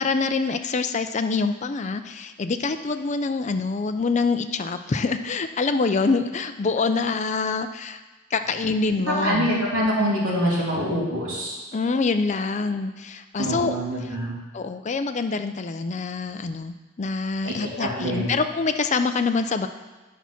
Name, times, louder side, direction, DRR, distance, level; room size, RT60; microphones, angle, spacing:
voice 1, 0.0-8.0 8.3-9.5 11.7-13.8 14.5-19.7, left 4 dB, 35° left, 8 dB, 0.4 m, -25 dB
voice 2, 9.1-11.6 13.4-14.4 17.4-18.3, equal, 85° right, -6 dB, 2.8 m, -25 dB
8.5 x 5.7 x 5.9 m, 1.2 s
head